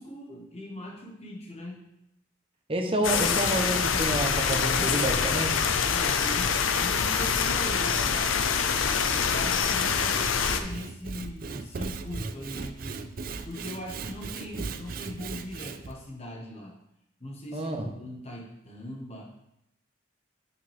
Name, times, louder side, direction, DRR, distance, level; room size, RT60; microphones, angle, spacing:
voice 1, 0.0-1.8 4.7-5.1 5.9-13.2 13.4-16.7 17.2-19.2, left 1 dB, 30° left, -2 dB, 1.4 m, -40 dB
voice 2, 2.7-5.7 17.5-17.9, right 1 dB, 25° right, 3 dB, 0.9 m, -29 dB
sound 1, 3.0-10.6, left 6 dB, 80° left, 0.6 m, -25 dB
Sawing / Wood, 9.7-15.9, right 4 dB, 45° right, 0.4 m, -37 dB
8.1 x 6.0 x 3.5 m, 0.81 s
head